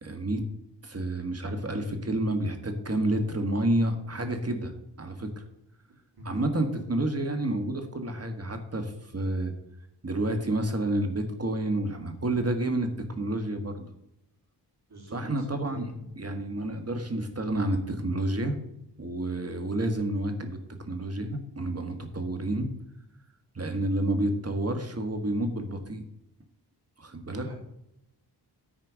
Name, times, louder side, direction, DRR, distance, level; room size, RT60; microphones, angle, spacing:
voice 1, 0.0-0.4 0.8-4.7 5.0-5.4 6.2-9.5 10.0-12.9 13.1-13.9 15.1-15.9 16.2-18.6 19.0-20.6 20.9-22.7 23.5-26.0 27.0-27.5, right 1 dB, 35° right, 6 dB, 1.6 m, -29 dB
voice 2, 14.9-16.1 27.3-27.5, left 1 dB, 60° right, -2 dB, 3.8 m, -45 dB
10.0 x 4.4 x 7.4 m, 0.83 s
cardioid pair, 65°, 42 cm